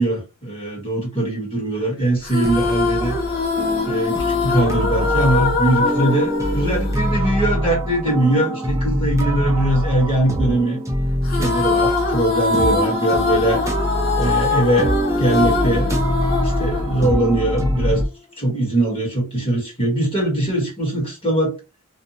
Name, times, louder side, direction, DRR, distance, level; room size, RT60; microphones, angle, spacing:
voice 1, 0.0-3.2 3.8-10.8 11.3-13.6 14.2-16.0 16.3-18.0 18.4-21.5, right 1 dB, 25° left, 1.3 m, -21 dB
sound 1, 2.2-7.7 11.2-17.7, left 4 dB, 45° left, 0.6 m, -23 dB
sound 2, 2.4-18.0, equal, 15° right, 0.6 m, -24 dB
2.6 x 2.3 x 2.8 m
head